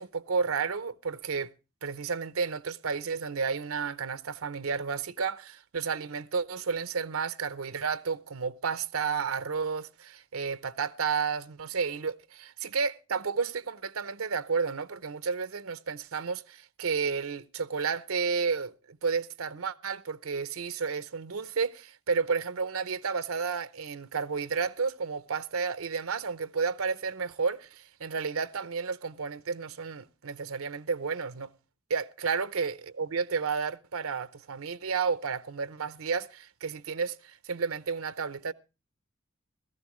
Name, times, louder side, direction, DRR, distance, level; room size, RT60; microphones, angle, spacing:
voice 1, 0.0-1.5 1.8-31.5 31.9-38.5, right 5 dB, 90° right, 0.7 m, -32 dB
17.5 x 14.5 x 3.1 m
head